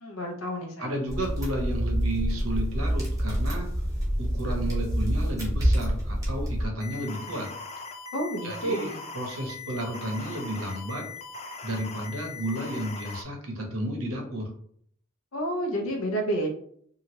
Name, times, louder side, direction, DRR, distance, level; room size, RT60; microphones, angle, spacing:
voice 1, 0.0-1.0 8.1-9.0 15.3-16.5, right 1 dB, 80° left, 2 dB, 0.7 m, -30 dB
voice 2, 0.8-3.7 4.2-7.5 8.4-11.1 11.6-14.5, right 1 dB, 90° right, 1 dB, 0.9 m, -32 dB
sound 1, 1.1-6.7, equal, 15° right, 0.8 m, -27 dB
sound 2, 6.8-13.2, left 4 dB, 30° left, 0.3 m, -40 dB
2.8 x 2.4 x 3.0 m, 0.63 s
head